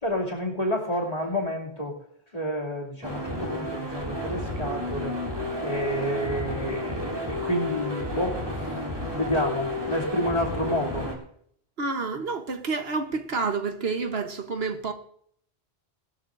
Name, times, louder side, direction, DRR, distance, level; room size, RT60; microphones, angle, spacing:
voice 1, 0.0-2.0 2.3-5.2 5.6-8.8 9.1-11.1, equal, 35° left, 2.9 m, -29 dB
sound 1, 3.0-11.1, left 1 dB, 25° right, 3.2 m, -32 dB
voice 2, 11.8-14.9, right 4 dB, 70° right, 1.3 m, -29 dB
20.5 x 12.5 x 2.6 m
omnidirectional pair, 1.1 m